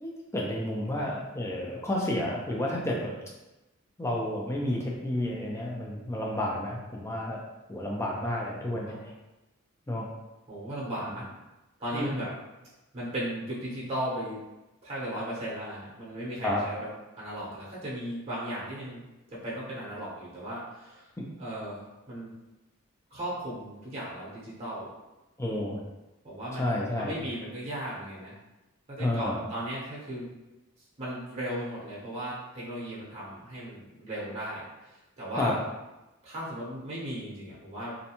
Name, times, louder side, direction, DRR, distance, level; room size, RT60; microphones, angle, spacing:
voice 1, 0.0-3.1 4.0-7.4 7.7-9.1 9.9-10.1 11.9-12.1 16.4-16.6 21.2-21.3 25.4-25.8 26.5-27.2 29.0-29.5 35.4-35.5, left 1 dB, 10° left, -2 dB, 0.4 m, -31 dB
voice 2, 8.7-9.0 10.5-11.3 11.8-12.3 12.9-14.4 14.8-16.9 17.2-19.0 19.3-21.1 21.4-22.3 23.1-24.9 26.2-28.4 28.9-30.3 31.0-35.5 36.2-38.0, right 1 dB, 30° right, -7 dB, 0.8 m, -36 dB
2.5 x 2.1 x 2.8 m, 1.0 s
head